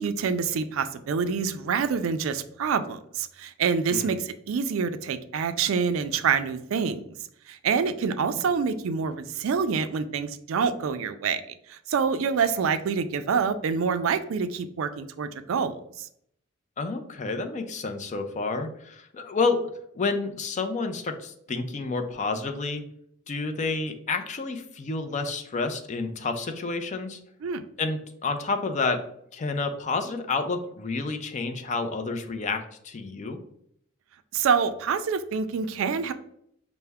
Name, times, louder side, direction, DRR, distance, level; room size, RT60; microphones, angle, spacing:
voice 1, 0.0-7.0 7.5-11.4 11.7-16.1 27.4-27.6 34.3-36.1, right 6 dB, 70° right, 10 dB, 0.3 m, -26 dB
voice 2, 3.9-4.2 8.3-8.4 16.8-19.7 19.9-22.8 23.3-27.2 27.8-29.0 29.3-33.4, left 3 dB, 35° left, 7 dB, 0.4 m, -29 dB
5.5 x 2.1 x 3.4 m, 0.70 s
head